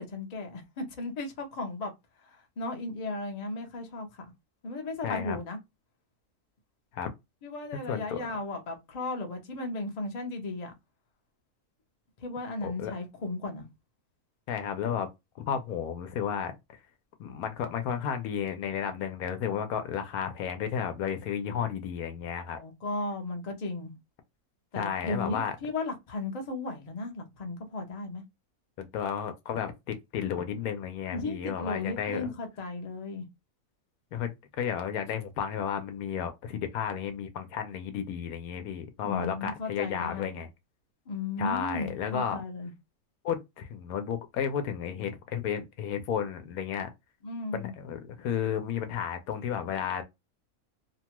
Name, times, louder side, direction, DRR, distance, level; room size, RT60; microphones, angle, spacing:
voice 1, 0.0-1.9 2.2-4.3 4.6-5.6 7.4-10.7 12.2-13.7 22.5-23.9 24.7-28.2 31.1-33.3 39.0-40.4 41.1-42.7 47.2-47.7, left 2 dB, 40° left, 0.6 m, -35 dB
voice 2, 5.0-5.4 6.9-7.1 7.9-8.2 12.6-12.9 14.5-15.1 15.4-16.5 17.2-22.6 24.7-25.5 28.8-32.3 34.1-40.5 41.4-42.5 43.2-46.9 47.5-50.0, left 8 dB, 80° left, 1.1 m, -33 dB
2.9 x 2.2 x 2.9 m
omnidirectional pair, 1.6 m